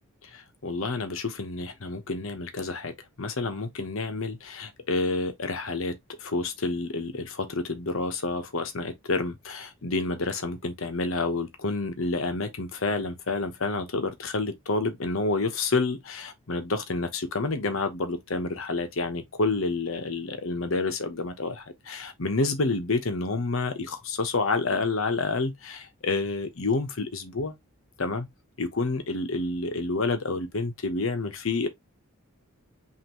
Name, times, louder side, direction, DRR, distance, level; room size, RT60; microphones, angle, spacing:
voice 1, 0.2-27.5 28.0-28.3 28.6-31.7, left 3 dB, 65° left, 1.0 m, -29 dB
5.7 x 2.7 x 3.0 m
head